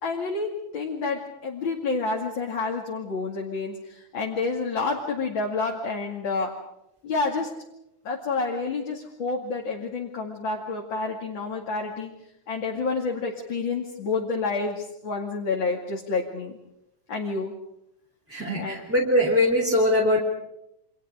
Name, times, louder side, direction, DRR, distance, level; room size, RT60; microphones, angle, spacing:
voice 1, 0.0-6.5 7.0-7.5 8.0-12.1 12.5-16.6 17.1-17.5 18.5-18.8, left 4 dB, 40° left, -1 dB, 2.9 m, -29 dB
voice 2, 18.3-20.2, left 1 dB, 5° right, -2 dB, 3.1 m, -22 dB
29.5 x 26.0 x 5.1 m, 0.82 s
omnidirectional pair, 3.3 m